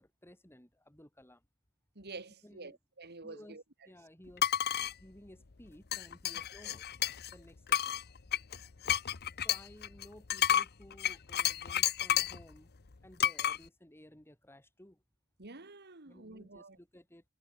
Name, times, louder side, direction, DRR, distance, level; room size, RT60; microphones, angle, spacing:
voice 1, 0.0-1.5 2.4-2.8 3.2-3.6 3.9-4.5 4.8-6.9 7.3-8.0 9.4-12.7 13.0-15.0 16.1-17.2, left 1 dB, 10° left, 5.5 m, -56 dB
voice 2, 2.0-3.6 15.4-16.8, right 3 dB, 50° right, 2.8 m, -48 dB
sound 1, 4.4-4.9 5.9-7.3 7.7-12.4 13.2-13.6, left 10 dB, 50° left, 0.8 m, -31 dB
head